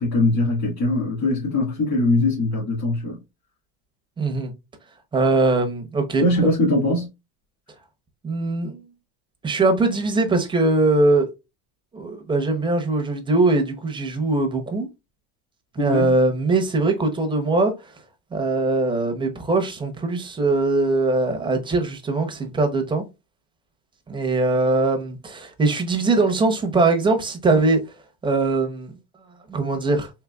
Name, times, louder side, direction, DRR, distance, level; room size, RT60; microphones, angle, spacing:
voice 1, 0.0-3.2 6.2-7.1 15.8-16.1, left 2 dB, 40° left, 1.8 m, -21 dB
voice 2, 4.2-4.5 5.1-6.2 8.2-8.8 9.4-11.3 11.9-14.9 15.7-17.9 18.3-23.0 24.1-27.8 28.2-28.9 29.5-30.1, right 3 dB, 10° right, 0.6 m, -21 dB
3.9 x 2.8 x 2.3 m
supercardioid pair, 130°, 43 cm